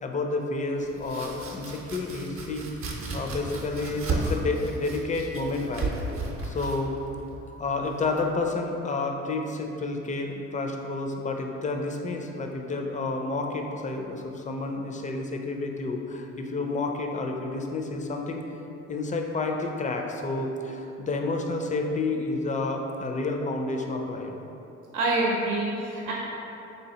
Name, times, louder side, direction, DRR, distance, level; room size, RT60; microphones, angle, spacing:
voice 1, 0.0-5.9 6.4-6.9 7.5-18.5 18.9-24.4, left 3 dB, 25° left, 3 dB, 0.4 m, -30 dB
Domestic sounds home sounds, 0.8-8.5, right 3 dB, 50° right, 0.6 m, -34 dB
voice 2, 24.9-26.1, right 2 dB, 85° right, -4 dB, 0.7 m, -26 dB
3.3 x 2.8 x 4.1 m, 2.9 s
cardioid pair, 90°, 30 cm